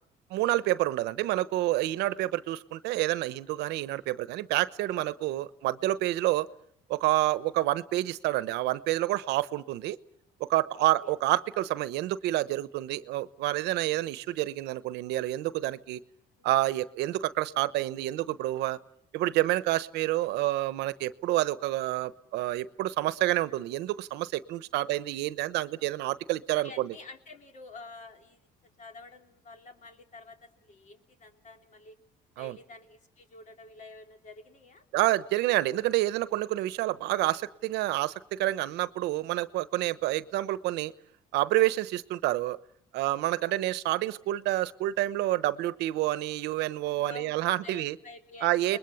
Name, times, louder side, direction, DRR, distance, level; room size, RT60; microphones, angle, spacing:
voice 1, 0.3-6.5 6.9-10.0 10.4-16.0 16.4-18.8 19.1-26.9 32.4-32.6 34.9-40.9 41.3-42.6 42.9-47.9 48.4-48.8, right 16 dB, 90° right, 15 dB, 1.0 m, -28 dB
voice 2, 10.7-11.1 16.4-16.5 24.7-25.0 26.6-28.5 28.8-32.0 32.4-34.9 36.9-37.1 43.4-43.7 47.0-48.8, left 3 dB, 45° left, 5 dB, 3.4 m, -49 dB
29.5 x 21.0 x 7.1 m, 0.66 s
cardioid pair, 110°, 17 cm